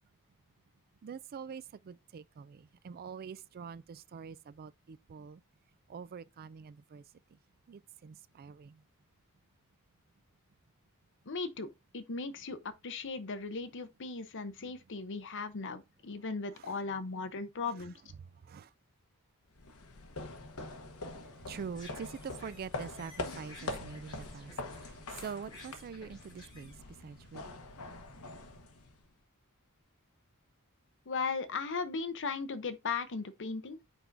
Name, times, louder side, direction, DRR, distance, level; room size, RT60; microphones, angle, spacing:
voice 1, 1.0-5.4 5.9-7.0 7.3-7.4 7.7-8.8 16.6-16.8 18.2-18.7 21.5-26.7 27.0-27.6, right 6 dB, 45° right, 0.3 m, -45 dB
voice 2, 11.3-18.0 31.1-33.8, left 4 dB, 60° left, 0.7 m, -37 dB
sound 1, 19.5-29.2, left 2 dB, 75° left, 1.0 m, -44 dB
sound 2, 21.6-24.9 25.2-26.8, left 2 dB, 20° left, 3.5 m, -55 dB
8.0 x 4.6 x 2.6 m
head